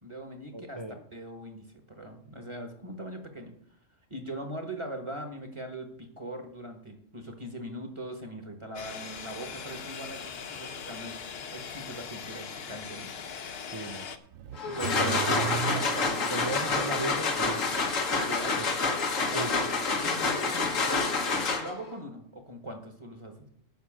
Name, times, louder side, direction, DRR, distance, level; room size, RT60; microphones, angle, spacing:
voice 1, 0.0-0.8 1.1-3.5 4.1-11.2 11.5-13.1 14.7-16.9 18.3-18.6 19.2-23.5, right 1 dB, 25° right, 1.5 m, -40 dB
voice 2, 0.5-1.0 13.7-14.1 15.0-15.2 16.3-17.8 18.6-18.7 19.3-19.5, right 2 dB, 40° right, 0.4 m, -36 dB
sound 1, 8.7-14.2, left 6 dB, 55° left, 0.9 m, -40 dB
Car / Accelerating revving vroom, 14.3-16.5, right 9 dB, 70° right, 0.8 m, -35 dB
sound 2, 14.6-21.9, left 4 dB, 85° left, 1.8 m, -28 dB
9.6 x 6.0 x 7.4 m
omnidirectional pair, 1.3 m